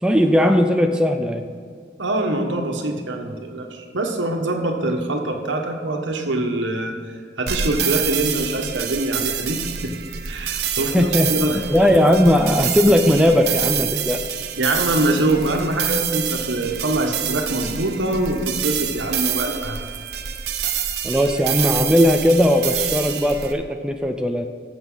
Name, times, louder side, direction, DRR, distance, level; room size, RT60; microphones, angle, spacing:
voice 1, 0.0-1.4 10.9-11.3 11.7-14.2 21.0-24.5, equal, 5° right, 5 dB, 0.4 m, -18 dB
voice 2, 2.0-6.9 7.4-9.9 10.2-11.6 14.6-19.8, right 1 dB, 85° right, 3 dB, 1.4 m, -24 dB
sound 1, 7.5-23.5, right 9 dB, 55° right, 0.7 m, -27 dB
14.5 x 7.1 x 4.0 m, 2.1 s
head